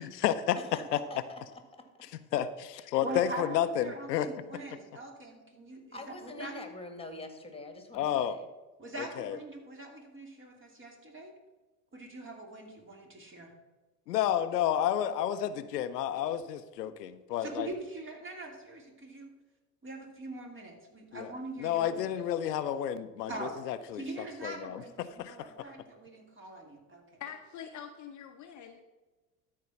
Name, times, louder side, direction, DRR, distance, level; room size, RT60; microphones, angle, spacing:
voice 1, 0.0-0.6 0.9-1.0 2.3-4.3 7.9-8.4 9.0-9.4 14.1-17.7 21.1-21.3 21.6-24.0 24.4-24.8 25.2-25.5, left 10 dB, 85° left, 11 dB, 0.7 m, -31 dB
voice 2, 0.6-1.4 2.7-2.8 5.9-8.5, left 2 dB, 10° left, 6 dB, 1.9 m, -44 dB
voice 3, 3.0-6.5 8.8-11.3 11.9-13.5 17.4-19.3 19.8-22.1 23.3-23.6 23.9-27.0, right 2 dB, 25° right, 2 dB, 2.7 m, -42 dB
voice 4, 27.2-28.8, left 8 dB, 40° left, 6 dB, 0.8 m, -44 dB
13.0 x 4.7 x 5.8 m, 1.2 s
hypercardioid pair, 80°, 47 cm